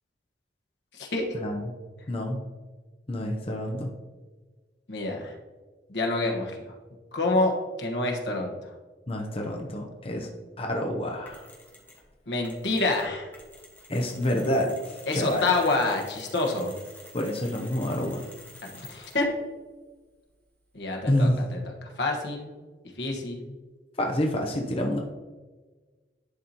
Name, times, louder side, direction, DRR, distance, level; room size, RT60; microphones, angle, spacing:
voice 1, 0.9-1.3 4.9-5.4 5.9-6.8 7.1-8.7 12.3-13.3 15.1-16.8 18.6-19.3 20.7-22.5 22.9-23.5, left 2 dB, 75° left, 1 dB, 1.2 m, -28 dB
voice 2, 2.1-2.4 3.1-3.9 9.1-10.3 10.6-11.4 13.9-15.4 17.1-18.3 21.1-21.3 24.0-25.0, left 1 dB, 35° left, 1 dB, 0.7 m, -28 dB
Mechanisms, 11.3-12.1 12.4-19.3, left 1 dB, 10° left, 1.3 m, -49 dB
11.0 x 4.2 x 2.9 m, 1.3 s
head